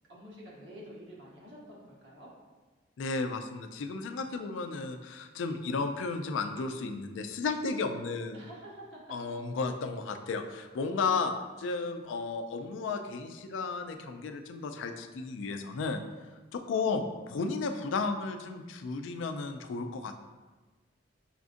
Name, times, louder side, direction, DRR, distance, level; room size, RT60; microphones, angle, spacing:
voice 1, 0.1-2.3 8.3-9.0 10.9-11.5, equal, 70° right, -5 dB, 1.1 m, -49 dB
voice 2, 3.0-8.4 9.1-11.3 11.6-16.0 16.5-20.2, left 4 dB, 85° left, 6 dB, 0.3 m, -33 dB
5.7 x 2.4 x 2.5 m, 1.3 s
head